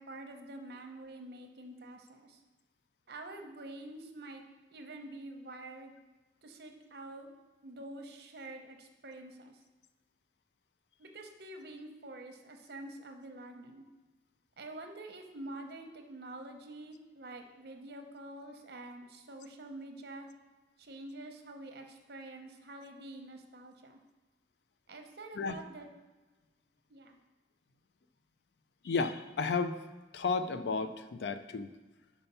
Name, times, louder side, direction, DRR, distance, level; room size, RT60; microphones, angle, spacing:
voice 1, 0.0-2.4 3.1-4.5 4.7-5.9 6.4-7.3 7.6-9.6 11.0-13.9 14.6-20.3 20.8-24.0 24.9-25.9 26.9-27.2, right 2 dB, 60° right, 4 dB, 0.8 m, -47 dB
voice 2, 28.8-29.8 30.1-31.7, left 4 dB, 70° left, 10 dB, 0.4 m, -33 dB
5.6 x 4.4 x 5.5 m, 1.2 s
head